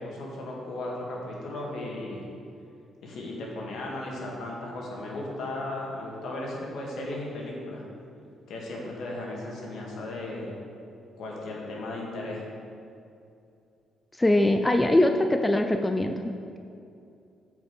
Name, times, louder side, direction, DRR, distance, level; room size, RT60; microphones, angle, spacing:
voice 1, 0.0-2.2 3.0-7.8 8.5-10.5 11.2-12.4, left 2 dB, 70° left, -2 dB, 1.9 m, -36 dB
voice 2, 14.2-16.6, left 1 dB, 15° left, 6 dB, 0.4 m, -23 dB
8.0 x 5.2 x 5.2 m, 2.6 s
cardioid pair, 90°, 0 cm